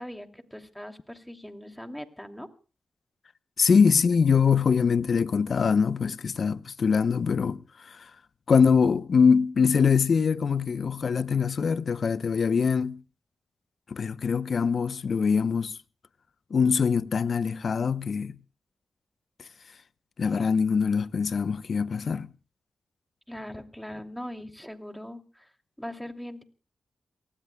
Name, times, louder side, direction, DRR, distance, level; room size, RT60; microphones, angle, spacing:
voice 1, 0.0-2.5 23.3-25.5 25.8-26.4, left 1 dB, 5° left, 2.8 m, -40 dB
voice 2, 3.6-8.1 8.5-13.0 13.9-15.8 16.5-18.3 20.2-22.3, left 6 dB, 65° left, 0.8 m, -23 dB
28.5 x 19.0 x 2.3 m
supercardioid pair, 45°, 0 cm